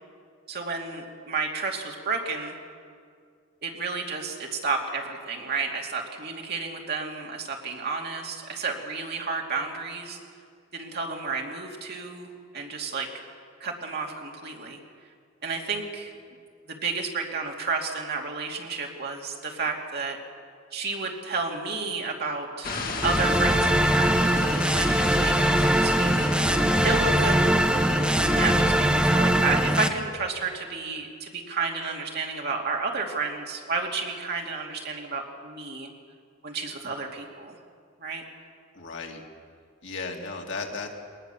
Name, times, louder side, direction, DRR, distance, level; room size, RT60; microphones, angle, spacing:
voice 1, 0.5-2.5 3.6-10.2 10.7-12.3 12.5-13.1 13.6-14.8 15.4-16.1 16.7-20.2 20.7-22.7 23.0-27.6 28.2-35.9 36.4-37.6 38.0-38.2, right 4 dB, 55° right, 1 dB, 2.6 m, -31 dB
sound 1, 22.6-29.1, left 2 dB, 45° left, 2.4 m, -34 dB
sound 2, 23.0-29.9, right 1 dB, 5° right, 0.9 m, -22 dB
voice 2, 38.7-39.2 39.8-40.9, left 3 dB, 65° left, 1 dB, 2.5 m, -35 dB
21.5 x 19.0 x 7.1 m, 2.2 s
head